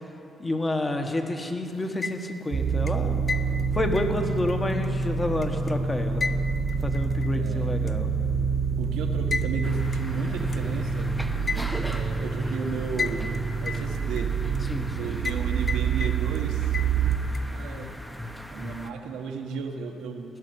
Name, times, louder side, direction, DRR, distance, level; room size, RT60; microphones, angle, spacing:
voice 1, 0.4-3.2 3.7-6.2 6.8-8.1 14.7-15.1, left 1 dB, 20° left, 5 dB, 1.4 m, -29 dB
sound 1, 1.8-2.5 2.9-5.7 6.2-7.5 7.9-8.0 9.3-9.5 9.9-10.0 10.5-10.6 11.5-12.0 13.0-13.4 13.7-14.6 15.2-15.4 15.7-16.4 16.7-17.4, left 4 dB, 40° left, 0.5 m, -33 dB
sound 2, 2.5-17.2, right 5 dB, 45° right, 1.0 m, -27 dB
voice 2, 7.3-7.7 8.8-11.1 11.8-14.3 15.0-16.7 17.5-17.9 18.5-20.4, right 5 dB, 90° right, 4 dB, 1.2 m, -35 dB
sound 3, 9.6-18.9, equal, 5° left, 0.9 m, -38 dB
17.0 x 6.6 x 9.6 m, 2.8 s
cardioid pair, 90°, 0 cm